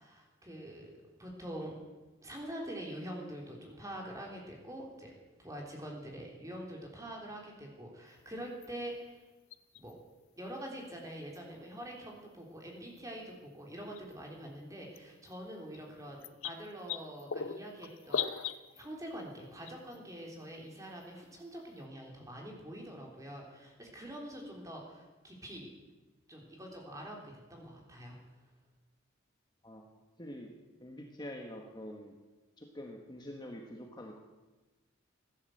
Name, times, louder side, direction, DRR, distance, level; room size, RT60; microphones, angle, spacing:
voice 1, 0.0-1.8 2.2-5.1 5.4-9.2 9.8-10.0 10.4-16.2 16.4-25.7 26.3-28.2, right 1 dB, 15° right, -1 dB, 3.5 m, -45 dB
sound 1, 8.6-8.7 9.5-9.9 11.3-11.4 12.9-13.0 14.0-14.1 15.0-15.1 15.3-15.4 15.7-15.8 16.2-18.9 19.7-20.0 21.0-21.1 21.3-21.4, left 7 dB, 75° left, 0.8 m, -37 dB
voice 2, 30.2-30.5 30.8-32.1 32.6-34.2, left 1 dB, 20° left, 1 dB, 1.4 m, -45 dB
16.5 x 11.5 x 7.9 m, 1.2 s
head